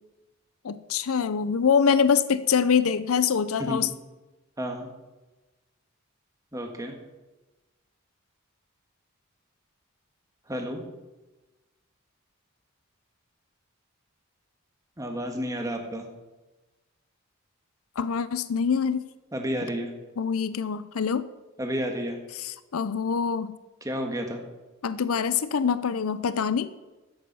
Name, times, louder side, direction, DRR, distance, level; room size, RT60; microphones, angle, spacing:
voice 1, 0.6-3.9 18.0-19.0 20.2-21.3 22.4-23.6 24.8-26.7, left 6 dB, 80° left, 15 dB, 0.5 m, -24 dB
voice 2, 4.6-4.9 6.5-6.9 10.5-10.8 15.0-16.1 19.3-19.9 21.6-22.2 23.8-24.4, equal, 15° right, 3 dB, 1.7 m, -31 dB
13.0 x 8.8 x 5.5 m, 1.1 s
head